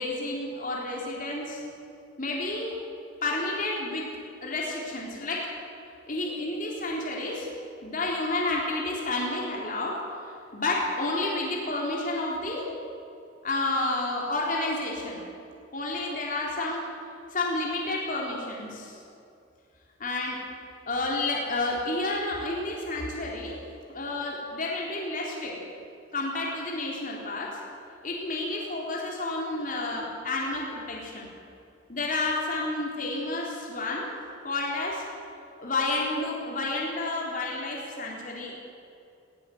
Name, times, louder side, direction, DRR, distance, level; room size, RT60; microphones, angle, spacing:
voice 1, 0.0-1.6 2.2-2.8 3.2-4.1 4.4-5.5 6.1-7.6 7.8-10.0 10.5-12.7 13.4-15.2 15.7-16.8 17.3-19.0 20.0-20.4 20.9-23.6 23.9-25.6 26.1-27.6 28.0-31.3 31.9-34.1 34.4-35.1 35.6-38.6, left 2 dB, 45° left, -3 dB, 3.7 m, -30 dB
19.0 x 17.0 x 7.9 m, 2.6 s
head